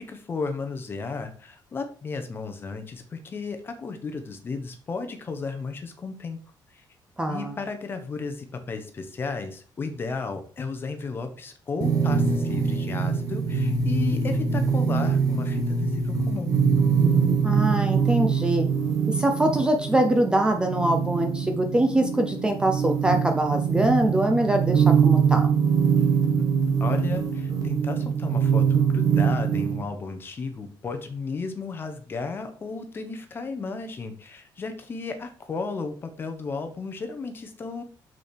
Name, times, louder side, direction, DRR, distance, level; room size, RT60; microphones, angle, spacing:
voice 1, 0.0-6.4 7.3-16.5 26.3-26.5 26.8-37.8, left 4 dB, 25° left, 7 dB, 1.1 m, -34 dB
voice 2, 7.2-7.6 17.4-18.7 19.1-25.5, right 1 dB, 10° right, 5 dB, 0.7 m, -23 dB
sound 1, 11.8-29.8, right 6 dB, 45° right, 1.6 m, -23 dB
6.8 x 6.0 x 4.6 m, 0.43 s
cardioid pair, 175°, 8 cm